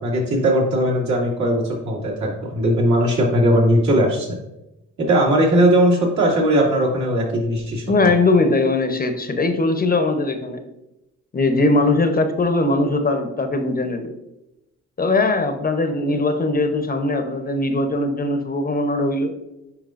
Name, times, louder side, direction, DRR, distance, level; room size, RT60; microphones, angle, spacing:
voice 1, 0.0-4.4 5.1-7.8, right 1 dB, 65° right, -3 dB, 2.4 m, -18 dB
voice 2, 7.9-10.6 11.3-14.1 15.0-19.3, left 2 dB, 30° left, 7 dB, 0.8 m, -20 dB
9.1 x 4.7 x 2.5 m, 0.92 s
cardioid pair, 90°, 30 cm